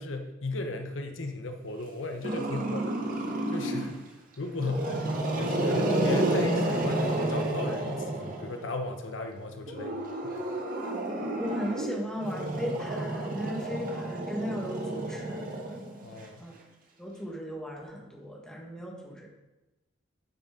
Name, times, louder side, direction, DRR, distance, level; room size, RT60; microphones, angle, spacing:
voice 1, 0.0-3.0 3.5-4.1 4.4-10.5 16.0-16.4, left 2 dB, 80° left, 5 dB, 0.9 m, -36 dB
Growling, 2.2-4.0 4.5-8.7 9.7-16.2, right 1 dB, 45° right, 1.4 m, -30 dB
voice 2, 11.4-15.5 16.4-16.5 17.0-19.3, equal, 5° left, -2 dB, 1.5 m, -37 dB
10.0 x 6.6 x 3.7 m, 1.0 s
head